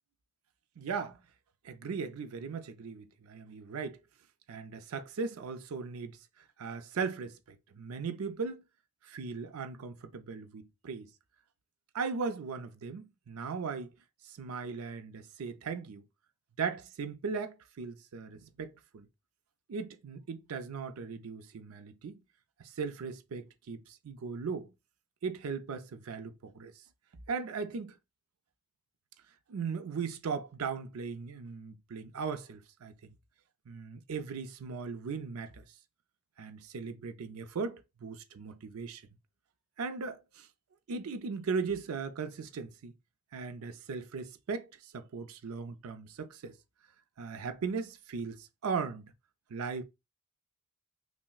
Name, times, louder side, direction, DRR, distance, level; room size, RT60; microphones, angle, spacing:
voice 1, 0.8-1.2 1.6-4.0 4.5-6.2 6.6-8.6 9.0-11.1 11.9-13.9 14.2-16.0 16.6-19.1 19.7-22.2 22.6-24.7 25.2-26.7 27.3-28.0 29.5-33.1 33.7-35.6 36.4-39.0 39.8-40.5 40.9-42.9 43.3-46.6 47.2-49.1 49.5-49.8, right 5 dB, 90° right, 0.5 m, -38 dB
5.6 x 2.1 x 2.3 m
head